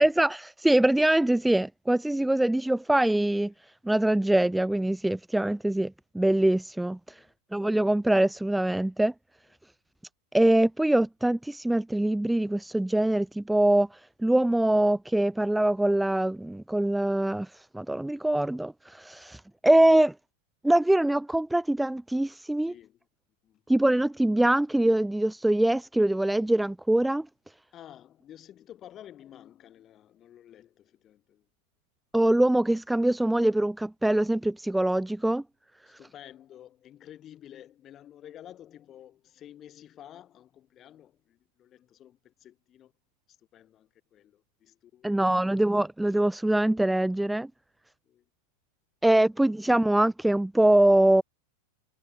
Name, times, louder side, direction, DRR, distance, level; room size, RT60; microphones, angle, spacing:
voice 1, 0.0-3.5 3.8-7.2 7.5-9.1 10.3-20.1 20.6-22.7 23.7-27.3 32.1-35.4 35.9-36.0 45.0-47.5 49.0-51.2, right 1 dB, 5° right, 0.4 m, -23 dB
voice 2, 22.6-23.1 23.4-23.6 27.7-31.5 35.9-42.9 43.3-45.4 48.0-48.3, left 11 dB, 30° left, 6.8 m, -51 dB
figure-of-eight pair, 90°, 0 cm